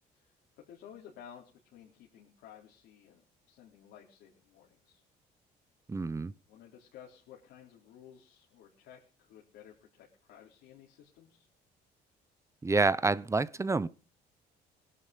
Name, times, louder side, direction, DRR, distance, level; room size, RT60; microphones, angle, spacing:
voice 1, 0.7-5.0 6.5-11.5, left 9 dB, 85° left, 4.4 m, -54 dB
voice 2, 5.9-6.3 12.6-13.9, right 3 dB, 15° right, 0.8 m, -28 dB
20.5 x 11.0 x 5.3 m
cardioid pair, 110°, 17 cm